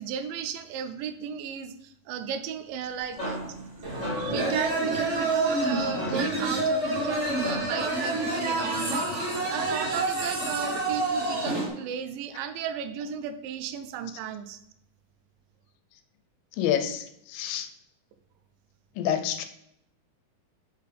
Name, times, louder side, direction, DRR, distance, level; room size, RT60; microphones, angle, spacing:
voice 1, 0.0-3.4 4.2-14.6, right 8 dB, 85° right, 10 dB, 2.3 m, -35 dB
sound 1, 2.7-7.9, equal, 15° left, 1.6 m, -39 dB
sound 2, 3.8-11.7, right 2 dB, 65° right, 0.7 m, -28 dB
voice 2, 16.6-17.7 19.0-19.5, left 9 dB, 90° left, 8 dB, 2.4 m, -28 dB
6.8 x 5.3 x 3.3 m, 0.77 s
omnidirectional pair, 3.9 m